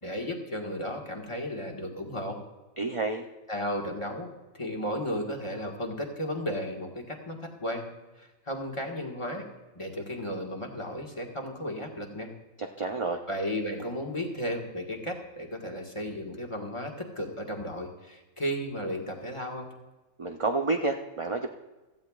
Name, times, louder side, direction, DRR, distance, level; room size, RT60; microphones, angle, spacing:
voice 1, 0.0-2.4 3.5-7.9 8.2-9.4 9.7-12.3 13.3-19.7, equal, 20° left, 0 dB, 1.7 m, -34 dB
voice 2, 2.8-3.3 12.6-13.2 20.2-21.5, right 3 dB, 40° right, 3 dB, 0.4 m, -29 dB
16.0 x 14.5 x 2.4 m, 1.1 s
omnidirectional pair, 1.4 m